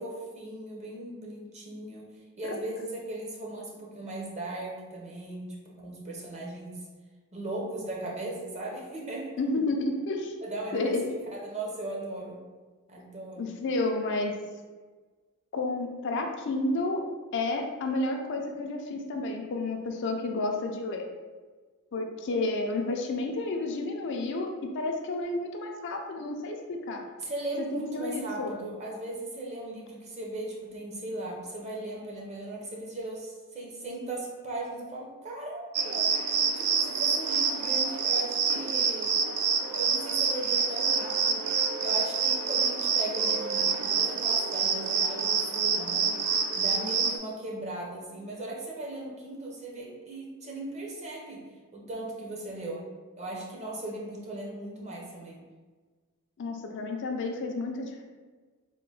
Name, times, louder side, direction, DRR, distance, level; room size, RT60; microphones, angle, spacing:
voice 1, 0.0-2.1 2.4-6.9 7.3-9.3 10.4-11.0 11.3-12.4 12.9-13.5 27.2-39.2 39.7-41.4 41.8-46.2 46.5-51.4 51.7-52.8 53.2-55.4, right 2 dB, 30° right, -2 dB, 0.7 m, -38 dB
voice 2, 9.4-10.3 10.7-11.1 13.4-14.3 15.5-17.0 17.3-21.0 21.9-26.6 26.9-27.1 27.7-28.6 56.4-58.1, left 2 dB, 55° left, 3 dB, 0.4 m, -31 dB
sound 1, 35.7-47.2, right 5 dB, 80° right, 0.4 m, -27 dB
3.7 x 2.1 x 3.8 m, 1.4 s
head